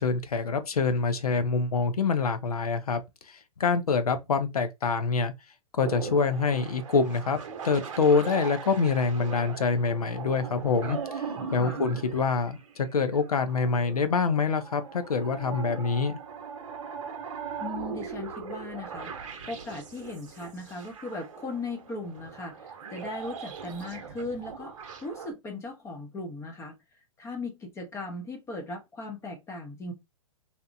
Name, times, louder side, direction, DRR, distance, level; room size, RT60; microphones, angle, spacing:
voice 1, 0.0-3.0 3.3-5.3 5.8-7.4 7.6-11.2 11.5-16.2, left 4 dB, 85° left, 0.5 m, -26 dB
sound 1, 5.8-25.3, right 6 dB, 60° right, 0.7 m, -40 dB
voice 2, 11.4-11.8 17.6-24.7 25.0-26.8 27.2-29.9, left 2 dB, 15° left, 0.5 m, -38 dB
2.8 x 2.0 x 2.5 m
hypercardioid pair, 120°, 19 cm